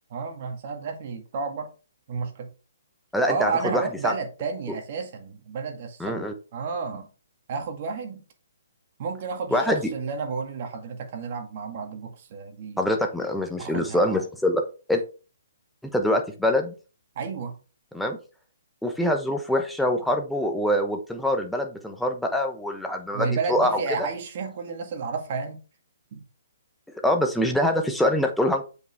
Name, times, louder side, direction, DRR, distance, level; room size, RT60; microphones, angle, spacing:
voice 1, 0.1-1.7 2.1-2.5 3.3-7.1 7.5-8.2 9.0-12.9 13.6-14.2 17.2-17.6 23.1-25.6 26.1-26.2, right 5 dB, 45° right, 1.9 m, -31 dB
voice 2, 3.1-4.1 6.0-6.3 9.5-9.9 12.8-14.6 14.9-15.0 15.9-16.7 17.9-18.2 18.8-24.1 27.0-28.7, left 1 dB, ahead, 1.0 m, -24 dB
7.8 x 5.1 x 3.4 m
hypercardioid pair, 150°, 0 cm